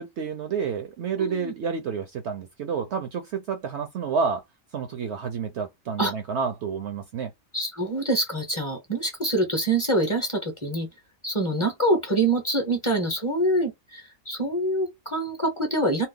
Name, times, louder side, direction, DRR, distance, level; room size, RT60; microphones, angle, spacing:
voice 1, 0.0-4.4 4.7-7.3, right 6 dB, 65° right, 0.7 m, -29 dB
voice 2, 1.2-1.5 6.0-6.1 7.5-10.9 11.2-16.1, right 1 dB, 25° left, 0.7 m, -25 dB
2.8 x 2.1 x 3.6 m
omnidirectional pair, 1.5 m